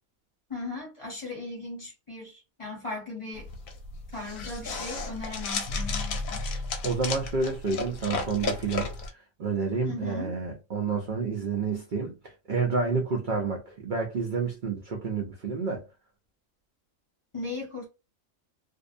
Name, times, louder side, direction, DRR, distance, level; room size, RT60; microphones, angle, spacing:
voice 1, 0.5-3.5 4.1-6.4 9.8-10.3 17.3-17.9, left 3 dB, 25° left, 0.8 m, -37 dB
sound 1, 3.3-9.1, left 3 dB, 80° left, 1.0 m, -33 dB
voice 2, 6.8-8.9 9.4-15.8, right 4 dB, 55° right, 0.5 m, -29 dB
2.6 x 2.0 x 2.5 m
omnidirectional pair, 1.4 m